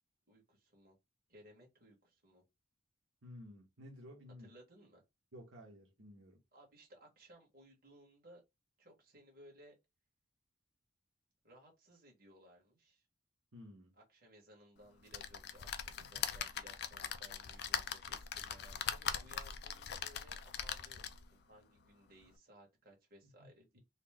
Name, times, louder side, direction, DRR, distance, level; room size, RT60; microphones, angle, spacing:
voice 1, 0.3-1.0 1.3-2.4 4.4-5.0 6.5-8.4 8.8-9.8 11.4-13.0 14.0-23.8, right 1 dB, 45° right, 1.7 m, -61 dB
voice 2, 3.2-4.5 5.3-6.4 13.5-13.9 16.0-16.2 23.4-23.5, left 1 dB, 80° right, 1.1 m, -54 dB
sound 1, 15.1-21.3 21.9-22.0 22.2-22.3, left 8 dB, 55° left, 0.4 m, -41 dB
4.1 x 2.1 x 3.5 m
head